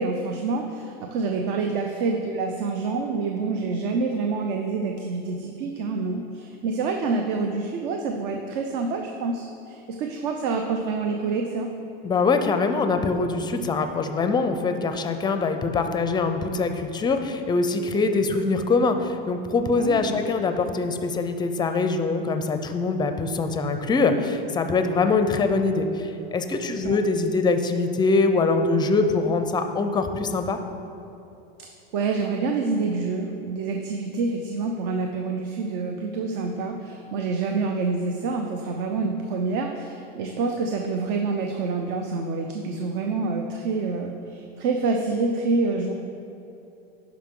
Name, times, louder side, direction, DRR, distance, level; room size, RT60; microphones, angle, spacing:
voice 1, 0.0-11.7 19.7-20.2 26.7-27.0 31.9-45.9, right 4 dB, 60° right, 3 dB, 0.7 m, -27 dB
voice 2, 12.0-30.6, left 3 dB, 15° left, 7 dB, 0.4 m, -23 dB
11.5 x 4.9 x 3.7 m, 2.9 s
supercardioid pair, 130°, 29 cm